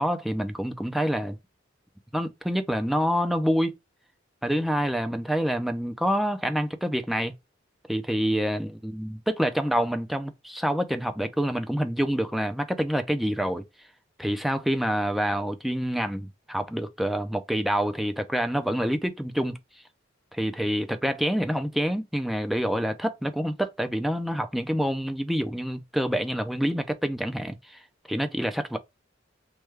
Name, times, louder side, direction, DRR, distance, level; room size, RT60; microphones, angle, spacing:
voice 1, 0.0-1.4 2.1-3.8 4.4-7.3 7.9-13.6 14.2-19.6 20.3-27.8 28.1-28.8, equal, ahead, 0.3 m, -27 dB
3.1 x 2.2 x 3.3 m
head